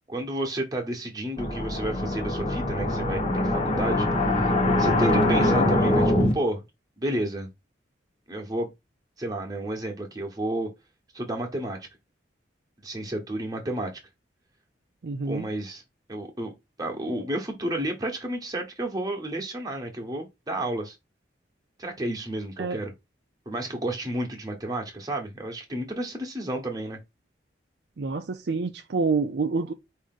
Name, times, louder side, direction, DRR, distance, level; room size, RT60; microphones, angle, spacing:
voice 1, 0.1-4.1 4.4-4.5 4.8-6.6 7.0-7.5 8.3-8.7 9.2-10.7 11.1-11.8 12.8-13.9 15.3-15.8 16.1-16.5 16.8-20.9 21.8-22.9 23.5-27.0, right 1 dB, 20° right, 1.1 m, -31 dB
sound 1, 1.4-6.3, left 1 dB, 30° left, 1.0 m, -23 dB
voice 2, 15.0-15.5 22.6-22.8 28.0-29.7, right 4 dB, 65° right, 0.5 m, -27 dB
4.9 x 2.8 x 3.7 m
head